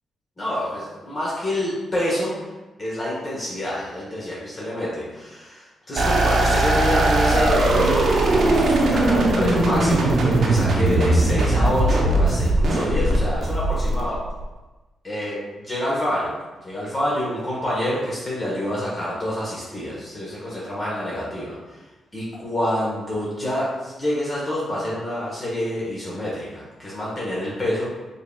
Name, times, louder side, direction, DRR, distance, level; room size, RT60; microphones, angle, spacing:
voice 1, 0.4-2.5 2.8-14.2 15.0-15.4 15.7-16.4 16.6-21.8 22.1-28.0, left 1 dB, 35° left, -6 dB, 1.1 m, -27 dB
sound 1, 6.0-14.4, right 2 dB, 70° right, 0.7 m, -19 dB
4.4 x 3.6 x 2.2 m, 1.1 s
cardioid pair, 85°, 0 cm